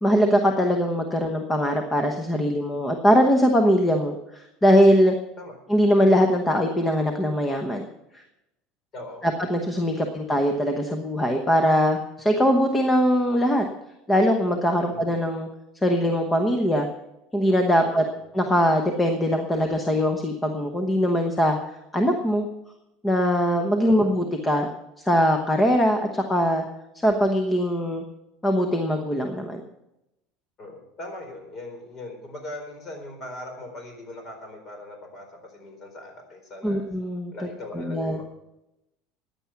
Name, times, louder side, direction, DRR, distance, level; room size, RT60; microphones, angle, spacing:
voice 1, 0.0-5.1 5.7-7.9 9.2-13.6 14.1-15.5 15.8-16.9 17.3-18.0 18.3-21.6 21.9-22.5 23.0-24.7 25.1-26.6 27.0-28.0 28.4-29.6 36.6-37.3 37.7-38.2, equal, 10° left, 4 dB, 1.0 m, -21 dB
voice 2, 8.9-9.3 9.9-10.3 14.8-15.1 17.8-18.1 23.8-24.1 30.6-36.8 37.3-38.2, left 1 dB, 30° left, 3 dB, 4.3 m, -40 dB
15.0 x 10.0 x 5.9 m, 0.90 s
cardioid pair, 165°, 0 cm